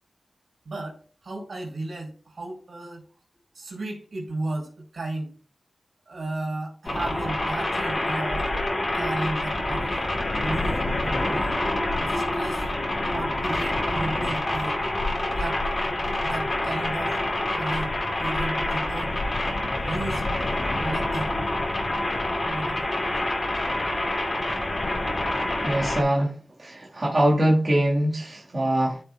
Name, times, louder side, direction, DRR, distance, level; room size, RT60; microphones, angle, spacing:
voice 1, 0.7-3.0 3.5-5.3 6.1-8.5 8.9-10.0 10.4-11.5 11.9-12.7 13.1-14.9 15.4-15.6 16.2-17.1 17.5-17.9 18.2-19.2 19.8-20.3 20.8-21.4 22.4-23.1, right 2 dB, 70° right, 0 dB, 3.6 m, -34 dB
sound 1, 6.8-26.0, left 1 dB, 40° left, 2.4 m, -27 dB
voice 2, 25.6-26.3 26.6-29.0, right 1 dB, 35° right, -5 dB, 1.7 m, -23 dB
13.5 x 5.1 x 2.3 m, 0.40 s
wide cardioid pair, 100°, 0 cm